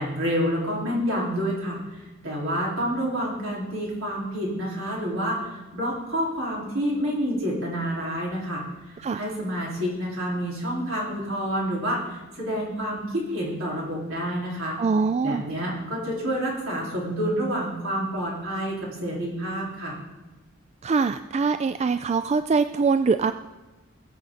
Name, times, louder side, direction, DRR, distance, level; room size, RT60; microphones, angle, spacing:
voice 1, 0.0-5.4 5.7-8.6 9.1-14.8 15.2-20.0, equal, 70° right, -4 dB, 4.6 m, -28 dB
voice 2, 9.0-9.3 14.8-15.4 20.8-23.3, right 4 dB, 30° right, 11 dB, 0.3 m, -23 dB
21.5 x 7.6 x 4.1 m, 1.1 s
head